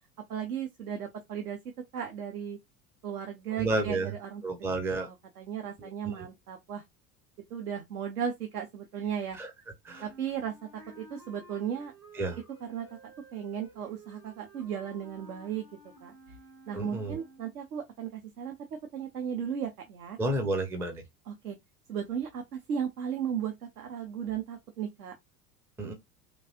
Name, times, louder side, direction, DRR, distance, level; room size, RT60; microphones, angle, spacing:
voice 1, 0.3-1.6 1.9-2.6 3.0-4.4 5.0-6.8 7.5-9.4 10.0-11.9 12.7-15.7 16.0-16.1 16.7-18.5 18.9-20.2 21.3-21.6 21.9-25.2, right 8 dB, 70° right, 0.7 m, -35 dB
voice 2, 3.5-4.1 4.4-5.1 5.8-6.3 9.3-9.5 9.8-10.1 12.1-12.4 16.7-17.2 20.2-21.0 25.8-25.9, right 2 dB, 5° right, 0.4 m, -31 dB
Wind instrument woodwind instrument, 9.9-17.6, right 2 dB, 90° right, 2.1 m, -53 dB
3.1 x 2.5 x 2.7 m
figure-of-eight pair, 75°, 47 cm